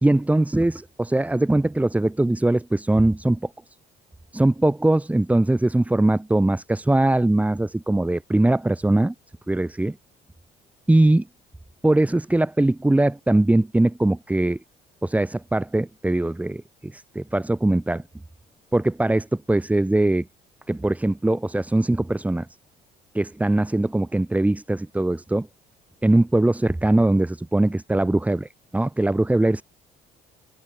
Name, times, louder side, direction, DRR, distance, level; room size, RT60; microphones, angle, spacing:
voice 1, 0.0-3.5 4.3-9.1 9.5-10.0 10.9-11.3 11.8-14.6 15.0-18.0 18.7-20.3 20.7-22.5 23.1-25.5 26.0-29.6, right 1 dB, 10° right, 1.8 m, -21 dB
open air
cardioid pair, 110°, 17 cm